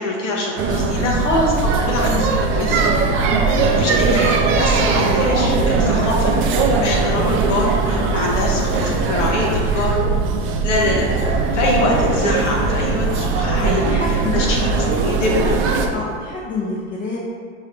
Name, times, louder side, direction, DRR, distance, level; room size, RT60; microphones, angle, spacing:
voice 1, 0.0-10.0 10.6-11.1 11.5-14.0 14.3-15.6, left 2 dB, 90° left, -2 dB, 0.9 m, -24 dB
sound 1, 0.6-15.9, right 4 dB, 35° right, 0.4 m, -19 dB
voice 2, 1.9-2.8 6.7-7.1 11.4-11.6 13.6-14.7 15.9-17.2, left 3 dB, 25° left, -5 dB, 0.6 m, -28 dB
4.6 x 3.2 x 2.5 m, 2.1 s
hypercardioid pair, 105°, 36 cm